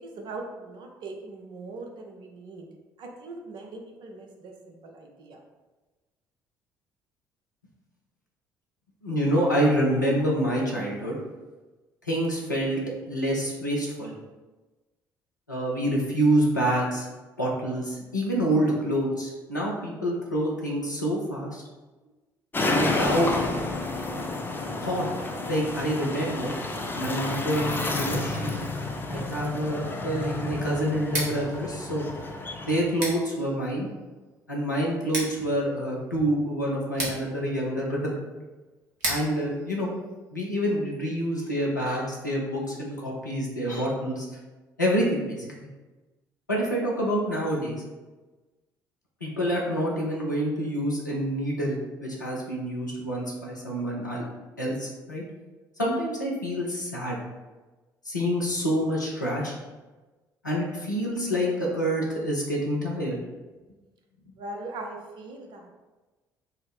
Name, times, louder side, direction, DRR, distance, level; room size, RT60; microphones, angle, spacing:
voice 1, 0.0-2.7 3.0-5.4 64.4-65.8, right 2 dB, 50° right, 2 dB, 0.7 m, -40 dB
voice 2, 9.0-11.2 12.1-12.8 13.1-14.1 15.5-17.1 17.4-21.6 22.7-23.3 24.8-25.0 25.5-26.5 26.9-28.6 29.1-32.0 32.6-33.9 34.5-38.3 39.0-39.9 40.3-44.3 44.8-45.7 46.5-47.8 49.2-54.2 54.6-55.2 55.8-57.2 58.1-59.5 60.4-63.2, equal, 90° left, -4 dB, 0.6 m, -27 dB
sound 1, 22.5-32.9, left 2 dB, 20° left, 0.5 m, -30 dB
Scissors, 31.0-40.8, right 1 dB, 75° right, 1.0 m, -38 dB
3.9 x 2.0 x 4.2 m, 1.2 s
figure-of-eight pair, 50°, 10 cm